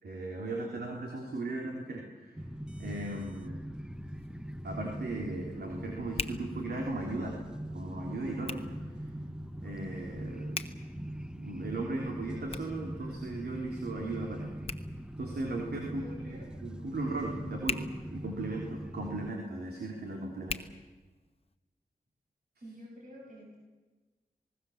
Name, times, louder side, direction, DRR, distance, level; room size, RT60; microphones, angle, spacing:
voice 1, 0.0-2.4 2.8-3.6 4.6-7.4 7.7-8.7 9.6-10.6 11.4-14.5 15.2-16.3 16.6-20.6, right 2 dB, 80° right, 0 dB, 3.4 m, -37 dB
sound 1, 2.4-19.3, equal, 5° right, 0.9 m, -41 dB
Hands, 3.9-21.6, left 3 dB, 35° left, 1.2 m, -46 dB
voice 2, 15.9-16.6 22.6-23.6, equal, 55° right, -3 dB, 6.9 m, -48 dB
26.5 x 19.5 x 7.2 m, 1.2 s
cardioid pair, 65°, 16 cm